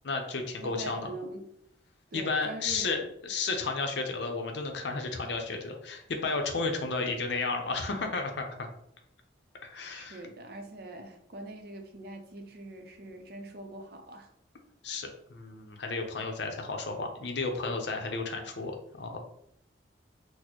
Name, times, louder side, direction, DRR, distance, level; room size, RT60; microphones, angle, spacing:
voice 1, 0.0-1.1 2.1-8.5 9.6-10.2 14.8-19.2, left 3 dB, 65° left, 3 dB, 0.6 m, -33 dB
voice 2, 0.6-1.5 2.1-3.1 9.9-14.3, right 1 dB, 55° right, 4 dB, 0.5 m, -43 dB
4.1 x 2.0 x 2.9 m, 0.73 s
head